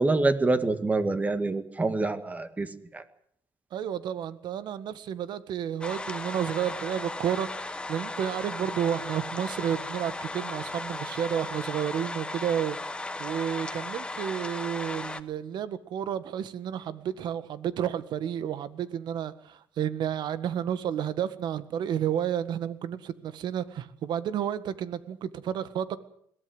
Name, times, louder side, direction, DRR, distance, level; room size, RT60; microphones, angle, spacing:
voice 1, 0.0-3.0, right 2 dB, 20° right, 11 dB, 2.1 m, -26 dB
voice 2, 3.7-26.0, right 9 dB, 65° right, 14 dB, 1.7 m, -31 dB
sound 1, 5.8-15.2, left 2 dB, 10° left, 1.4 m, -36 dB
22.0 x 17.5 x 8.0 m, 0.67 s
cardioid pair, 120°, 8 cm